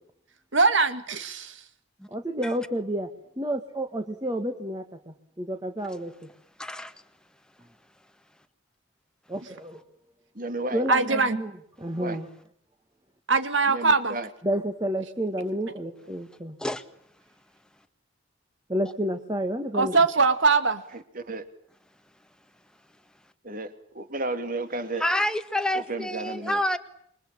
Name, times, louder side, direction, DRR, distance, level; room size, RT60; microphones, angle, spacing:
voice 1, 0.5-1.6 10.9-11.4 13.3-14.2 19.7-20.8, right 4 dB, 70° right, 11 dB, 2.3 m, -22 dB
voice 2, 2.1-3.1 3.4-6.1 9.3-9.8 10.7-11.5 11.8-12.3 14.4-16.6 18.7-19.9, right 1 dB, 20° right, 5 dB, 2.1 m, -30 dB
voice 3, 6.6-6.9 16.6-16.8 25.0-26.8, left 1 dB, 5° left, 8 dB, 1.6 m, -28 dB
voice 4, 10.3-10.8 12.0-12.2 13.7-14.3 21.1-21.4 23.4-25.0 25.7-26.6, right 2 dB, 45° right, 9 dB, 2.7 m, -33 dB
28.0 x 24.0 x 8.9 m, 0.69 s
head